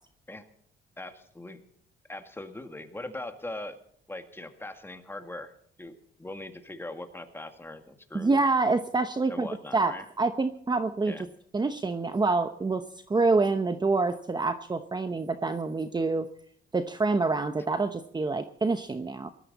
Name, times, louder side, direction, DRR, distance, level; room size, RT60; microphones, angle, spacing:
voice 1, 1.0-1.6 2.1-3.8 4.1-5.5 5.8-8.3 9.3-10.0 11.1-11.2, left 2 dB, 10° left, 6 dB, 2.0 m, -40 dB
voice 2, 8.1-9.5 9.7-11.3 11.5-16.3 16.7-19.3, right 3 dB, 20° right, 9 dB, 0.9 m, -27 dB
19.0 x 13.5 x 4.1 m, 0.65 s
cardioid pair, 90°, 20 cm